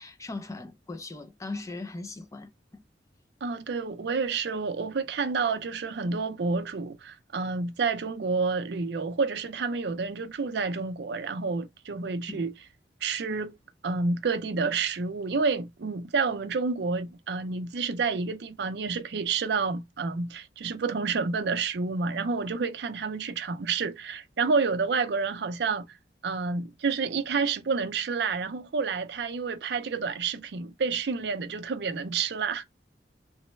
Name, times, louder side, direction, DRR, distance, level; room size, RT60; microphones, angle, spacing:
voice 1, 0.0-2.5 12.3-12.4, left 2 dB, 20° left, 0.4 m, -38 dB
voice 2, 3.4-12.5 13.0-13.6 13.8-25.9 26.2-32.6, right 4 dB, 70° right, 0.5 m, -29 dB
3.1 x 2.1 x 3.1 m
head